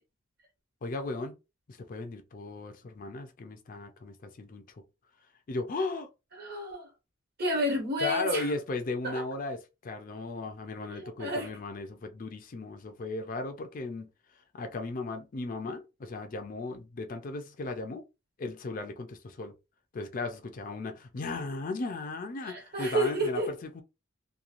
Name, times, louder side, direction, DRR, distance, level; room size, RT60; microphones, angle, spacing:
voice 1, 0.8-1.3 1.7-4.6 5.5-6.1 8.0-14.1 14.5-18.0 18.4-19.5 19.9-23.8, left 3 dB, 40° left, 0.4 m, -36 dB
voice 2, 6.4-6.9 7.4-8.5 9.0-9.2 10.9-11.5 22.4-23.5, right 1 dB, 50° right, 1.3 m, -30 dB
2.9 x 2.2 x 2.4 m
head